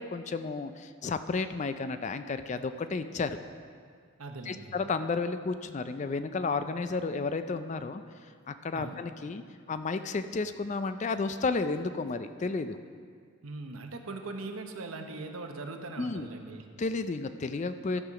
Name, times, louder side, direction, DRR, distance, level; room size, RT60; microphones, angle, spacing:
voice 1, 0.0-3.4 4.5-9.4 9.7-12.8 16.0-16.3 16.8-18.0, left 4 dB, 35° left, 10 dB, 0.3 m, -32 dB
voice 2, 4.2-4.7 8.7-9.0 13.4-16.6, right 3 dB, 80° right, 5 dB, 0.9 m, -40 dB
13.0 x 5.7 x 6.0 m, 2.1 s
head